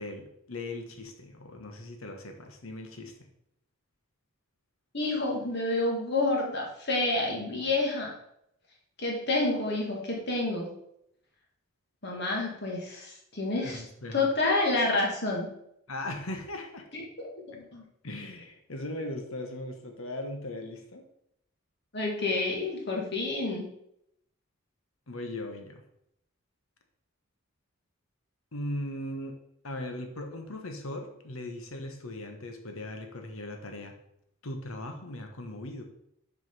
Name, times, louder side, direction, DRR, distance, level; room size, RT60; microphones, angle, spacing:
voice 1, 0.0-3.1 13.6-14.3 15.9-16.8 18.0-21.0 25.1-25.8 28.5-29.4 29.6-33.9 34.4-35.8, left 1 dB, 80° left, 4 dB, 1.3 m, -38 dB
voice 2, 4.9-8.1 9.0-10.7 12.0-13.8 14.1-15.5 16.9-17.8 21.9-23.7, left 2 dB, 55° left, -1 dB, 1.9 m, -29 dB
6.3 x 5.1 x 5.3 m, 0.76 s
head